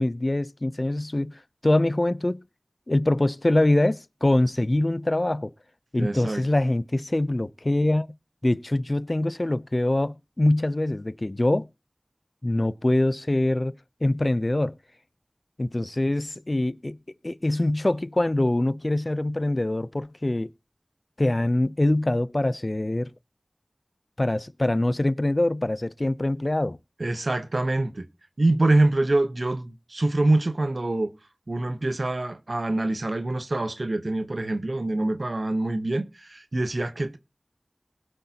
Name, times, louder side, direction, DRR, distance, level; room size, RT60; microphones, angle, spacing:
voice 1, 0.0-2.4 2.9-5.5 5.9-8.1 8.4-11.7 12.4-13.7 14.0-14.7 15.6-17.0 17.2-20.5 21.2-23.1 24.2-26.8, left 1 dB, 50° left, 0.5 m, -24 dB
voice 2, 6.0-6.4 27.0-28.1 28.4-31.1 31.5-37.2, right 2 dB, 80° right, 0.9 m, -25 dB
20.0 x 8.0 x 2.8 m
wide cardioid pair, 40°, 0 cm